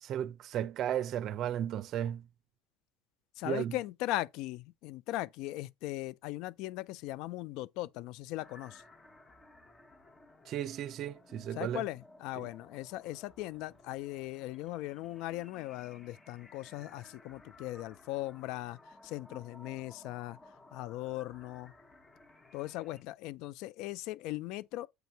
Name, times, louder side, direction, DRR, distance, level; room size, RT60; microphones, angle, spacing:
voice 1, 0.0-2.3 3.4-3.7 10.5-11.8 12.4-12.5, right 10 dB, 55° right, 0.5 m, -35 dB
voice 2, 3.4-8.8 11.6-20.4 20.7-21.7 22.5-24.9, left 16 dB, 70° left, 0.4 m, -39 dB
sound 1, 8.4-23.0, left 2 dB, 20° left, 1.1 m, -58 dB
7.9 x 2.7 x 4.6 m
supercardioid pair, 95°, 0 cm